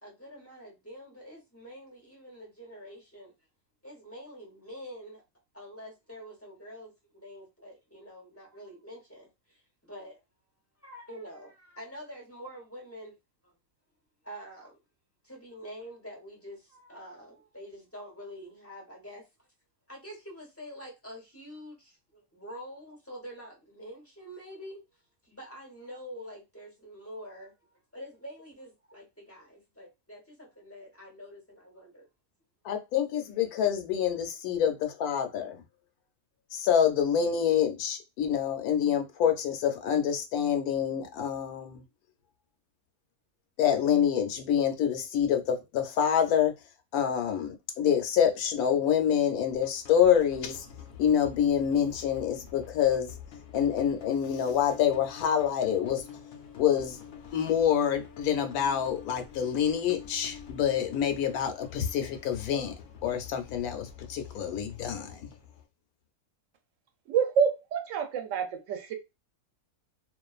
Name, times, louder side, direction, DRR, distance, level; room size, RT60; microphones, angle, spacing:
voice 1, 0.0-3.3 3.8-5.2 5.5-10.2 10.8-13.2 14.2-14.8 15.2-19.2 19.9-24.8 25.2-27.5 27.9-32.1, equal, 15° left, 0.7 m, -46 dB
voice 2, 32.6-35.6 36.5-41.8 43.6-46.5 46.9-50.7 51.0-53.1 53.5-56.1 56.6-57.0 57.3-62.7 63.0-65.3, left 9 dB, 80° left, 1.1 m, -26 dB
sound 1, 49.5-65.6, left 8 dB, 60° left, 0.7 m, -47 dB
voice 3, 67.1-68.9, right 7 dB, 65° right, 0.9 m, -27 dB
2.5 x 2.4 x 2.3 m
omnidirectional pair, 1.6 m